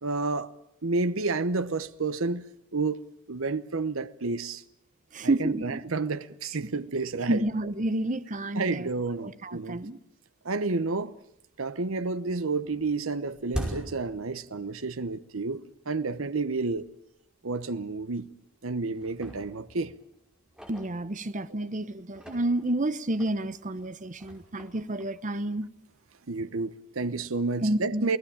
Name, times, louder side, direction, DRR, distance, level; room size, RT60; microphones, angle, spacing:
voice 1, 0.0-0.5 0.8-2.5 2.7-3.0 3.3-4.6 5.2-7.4 8.5-9.8 10.4-11.1 11.6-16.9 17.4-18.3 18.6-19.9 26.3-28.2, right 3 dB, 75° right, 1.0 m, -30 dB
voice 2, 5.1-5.8 7.3-8.9 9.2-10.0 20.7-25.7 27.6-28.1, right 1 dB, 40° right, 0.9 m, -30 dB
sound 1, 12.1-15.0 15.3-15.4 16.1-16.2 16.8-16.9 17.2-17.4 18.1-18.6 18.9-21.5 22.0-25.9, equal, 5° right, 5.0 m, -42 dB
29.0 x 18.0 x 8.8 m
head